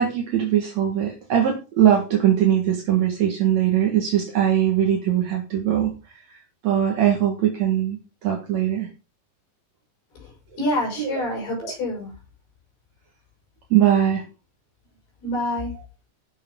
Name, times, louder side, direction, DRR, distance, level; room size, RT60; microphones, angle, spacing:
voice 1, 0.0-6.4 6.6-8.9 11.0-11.2 11.6-11.7 13.7-14.2, right 10 dB, 55° right, 0 dB, 2.1 m, -21 dB
voice 2, 10.2-12.1 15.2-15.7, left 1 dB, 55° left, -2 dB, 7.8 m, -27 dB
17.0 x 6.7 x 3.8 m, 0.32 s
omnidirectional pair, 5.4 m